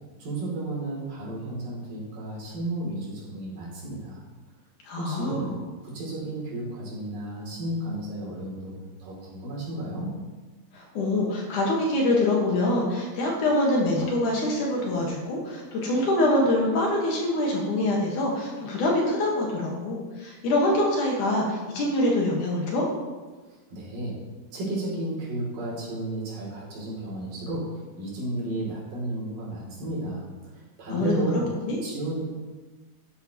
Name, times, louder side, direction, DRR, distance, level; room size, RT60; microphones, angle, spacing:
voice 1, 0.2-4.2 5.0-5.5 5.8-8.7 9.0-10.1 23.4-24.2 24.5-30.3 30.5-31.5 31.8-32.3, right 1 dB, 60° right, -5 dB, 4.7 m, -33 dB
voice 2, 4.9-5.5 10.7-22.8 30.9-31.4 31.7-31.8, left 1 dB, 60° left, -2 dB, 2.9 m, -25 dB
13.0 x 10.0 x 3.1 m, 1.3 s
omnidirectional pair, 4.3 m